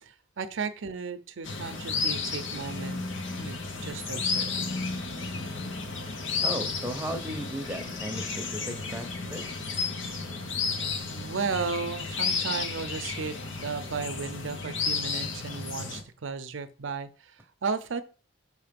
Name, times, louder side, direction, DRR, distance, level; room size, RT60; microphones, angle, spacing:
voice 1, 0.0-3.0 3.4-4.6 11.1-13.4 13.6-18.0, right 5 dB, 75° right, 0.6 m, -34 dB
sound 1, 1.4-16.0, left 4 dB, 75° left, 1.0 m, -32 dB
voice 2, 6.4-9.4, equal, 10° right, 0.7 m, -36 dB
5.7 x 3.2 x 5.2 m
head